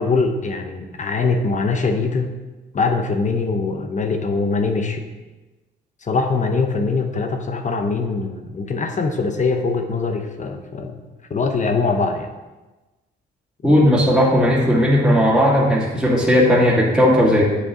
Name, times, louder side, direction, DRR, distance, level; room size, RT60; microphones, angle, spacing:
voice 1, 0.0-2.3 2.7-5.1 6.0-11.0 11.3-12.3 13.6-13.9, left 4 dB, 40° left, 5 dB, 0.9 m, -22 dB
voice 2, 13.6-17.4, equal, 5° right, -7 dB, 2.3 m, -16 dB
8.3 x 6.5 x 3.9 m, 1.2 s
cardioid pair, 90°, 20 cm